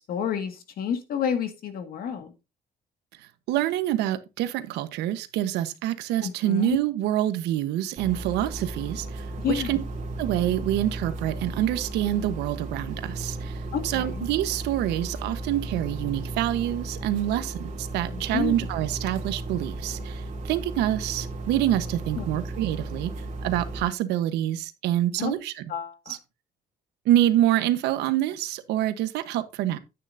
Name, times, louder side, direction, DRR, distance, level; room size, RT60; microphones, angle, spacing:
voice 1, 0.1-2.3 6.2-6.8 9.4-9.8 13.7-14.3 18.1-18.6 22.2-22.3 25.2-25.4 25.7-26.2, left 8 dB, 60° left, 1.9 m, -30 dB
voice 2, 3.5-9.8 10.2-13.6 13.8-23.1 23.4-25.6 26.1-26.2 27.0-29.8, right 13 dB, 85° right, 1.1 m, -26 dB
sound 1, 8.0-23.8, right 2 dB, 45° right, 2.9 m, -35 dB
10.0 x 9.2 x 2.6 m
cardioid pair, 110°, 17 cm